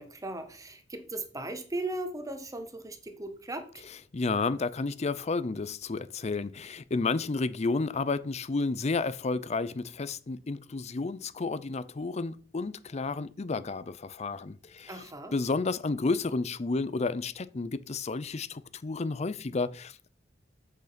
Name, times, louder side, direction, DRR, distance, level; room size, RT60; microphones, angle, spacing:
voice 1, 0.0-3.8 14.9-15.4, right 2 dB, 20° right, 1.3 m, -37 dB
voice 2, 4.1-15.0 15.3-20.1, left 3 dB, 35° left, 0.5 m, -31 dB
7.9 x 6.5 x 5.2 m
head